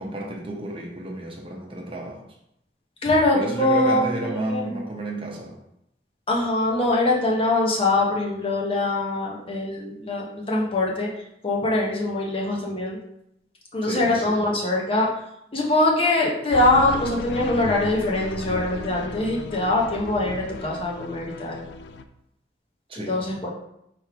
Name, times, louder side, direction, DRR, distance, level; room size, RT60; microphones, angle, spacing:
voice 1, 0.0-2.2 3.3-5.5 13.8-14.5 22.9-23.2, right 2 dB, 30° right, -1 dB, 0.8 m, -31 dB
voice 2, 3.0-4.8 6.3-11.1 11.4-13.0 13.7-15.1 15.5-21.6 23.0-23.5, left 2 dB, 30° left, -2 dB, 0.7 m, -23 dB
sound 1, 16.5-22.0, left 4 dB, 70° left, 0.3 m, -35 dB
3.4 x 3.1 x 4.8 m, 0.80 s
head